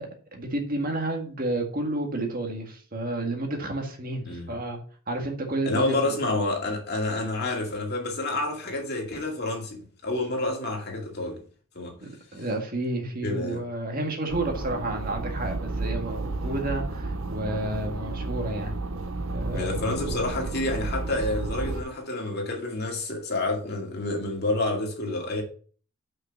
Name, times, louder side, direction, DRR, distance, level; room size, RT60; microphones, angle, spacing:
voice 1, 0.0-4.8 5.1-6.0 12.0-18.8 19.3-20.2, right 1 dB, 40° right, 1.8 m, -31 dB
voice 2, 4.2-4.6 5.6-11.4 11.8-11.9 12.4-12.5 13.2-13.6 19.5-25.4, left 2 dB, 45° left, 2.3 m, -29 dB
sound 1, 14.3-21.8, right 2 dB, 65° right, 0.7 m, -32 dB
5.9 x 5.5 x 5.9 m
head